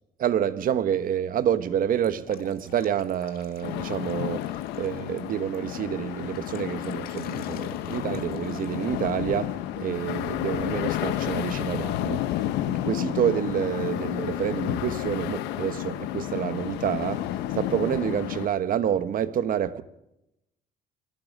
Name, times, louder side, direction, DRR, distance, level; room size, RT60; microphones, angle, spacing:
voice 1, 0.2-12.3 12.6-17.2 17.5-19.8, right 9 dB, 55° right, 1.2 m, -28 dB
Drip, 2.0-5.6 6.0-9.1, left 9 dB, 60° left, 2.4 m, -50 dB
sound 1, 3.6-18.5, left 13 dB, 90° left, 1.1 m, -31 dB
24.5 x 20.5 x 5.4 m
cardioid pair, 110°, 17 cm